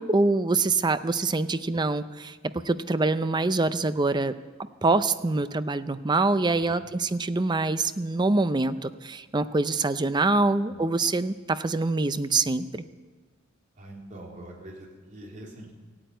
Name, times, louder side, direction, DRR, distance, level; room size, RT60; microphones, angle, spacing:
voice 1, 0.0-2.4 2.6-4.3 4.8-12.8, right 3 dB, 20° right, 12 dB, 0.5 m, -25 dB
voice 2, 13.8-15.7, right 1 dB, 40° right, -2 dB, 3.5 m, -44 dB
16.0 x 8.8 x 9.2 m, 1.3 s
head